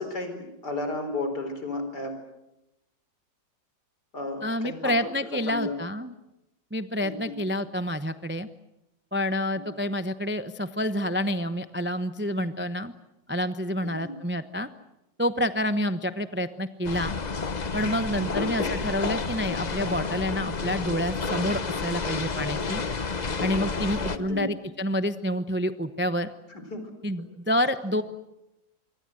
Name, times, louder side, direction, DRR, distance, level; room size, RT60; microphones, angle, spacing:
voice 1, 0.0-2.1 4.1-4.9 5.3-5.8 7.0-7.3 13.8-14.1 18.3-18.7 24.1-24.5 26.5-26.8, left 2 dB, 60° left, 7 dB, 5.0 m, -33 dB
voice 2, 4.4-6.1 6.7-8.5 9.1-12.9 13.3-14.7 15.2-17.2 17.7-22.8 23.4-26.3 27.0-28.0, equal, 15° right, 10 dB, 0.4 m, -28 dB
sound 1, 16.8-24.2, left 4 dB, 30° left, 0.8 m, -30 dB
26.5 x 24.0 x 7.8 m, 0.92 s
omnidirectional pair, 2.0 m